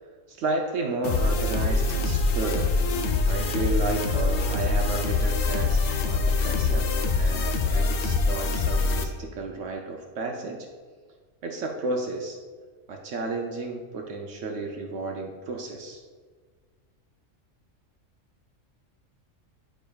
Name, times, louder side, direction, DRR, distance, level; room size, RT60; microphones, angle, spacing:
voice 1, 0.0-2.7 3.3-10.7 11.4-12.4 12.9-16.0, right 3 dB, 70° right, 2 dB, 0.9 m, -32 dB
sound 1, 1.0-9.0, left 3 dB, 60° left, 0.7 m, -24 dB
9.0 x 5.0 x 2.3 m, 1.5 s
omnidirectional pair, 1.3 m